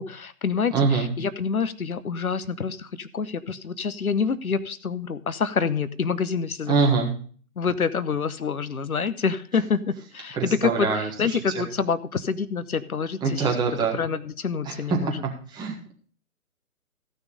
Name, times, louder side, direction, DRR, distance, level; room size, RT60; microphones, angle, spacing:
voice 1, 0.0-6.9 7.6-13.6 13.9-15.2, left 5 dB, 75° left, 14 dB, 1.0 m, -27 dB
voice 2, 0.7-1.1 6.7-7.1 10.3-11.6 13.2-14.0 14.6-15.1 15.5-15.9, right 4 dB, 10° right, 0 dB, 1.6 m, -24 dB
14.5 x 6.5 x 5.0 m, 0.43 s
figure-of-eight pair, 140°, 43 cm